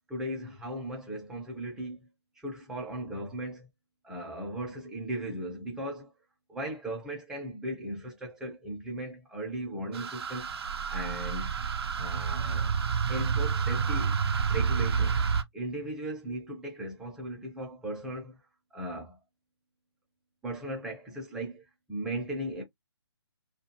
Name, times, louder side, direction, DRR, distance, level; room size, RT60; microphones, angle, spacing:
voice 1, 0.1-2.1 2.4-3.7 4.0-6.1 6.5-10.5 10.9-11.5 12.0-12.7 13.1-14.2 14.5-15.2 15.5-18.4 18.7-19.2 20.4-22.6, right 1 dB, 5° right, 0.6 m, -37 dB
sound 1, 9.9-15.4, right 6 dB, 65° right, 0.6 m, -29 dB
2.4 x 2.3 x 2.9 m
figure-of-eight pair, 145°, 14 cm